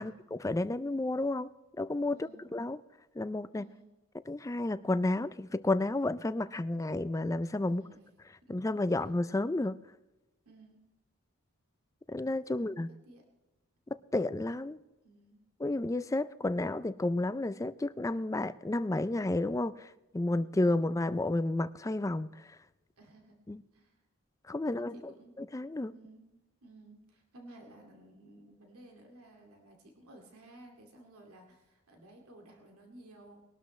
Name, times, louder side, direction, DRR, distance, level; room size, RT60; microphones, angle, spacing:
voice 1, 0.0-1.5 1.8-2.8 3.2-3.7 4.3-7.8 8.5-9.8 12.1-12.9 13.9-14.8 15.6-22.6 23.5-23.6 24.5-25.1 25.4-25.9, left 2 dB, 15° left, 15 dB, 0.3 m, -31 dB
voice 2, 2.1-2.5 3.5-3.9 7.7-8.1 8.5-8.6 8.9-9.1 10.5-10.8 12.5-13.3 15.0-15.4 23.0-23.4 23.7-24.0 24.6-25.4 25.9-33.5, right 1 dB, 85° right, 2 dB, 2.3 m, -55 dB
21.0 x 12.5 x 3.1 m, 1.1 s
head